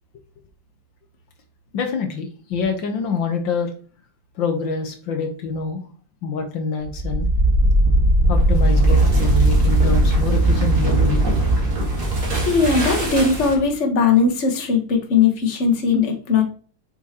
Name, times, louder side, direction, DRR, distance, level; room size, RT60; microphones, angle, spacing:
voice 1, 1.7-3.7 4.4-5.8 6.2-7.3 8.3-11.2, left 5 dB, 75° left, 4 dB, 1.8 m, -26 dB
sound 1, 6.8-13.7, right 1 dB, 45° right, 2.2 m, -18 dB
voice 2, 12.4-16.4, left 5 dB, 40° left, 1 dB, 1.5 m, -19 dB
7.3 x 5.6 x 2.9 m, 0.41 s
omnidirectional pair, 2.1 m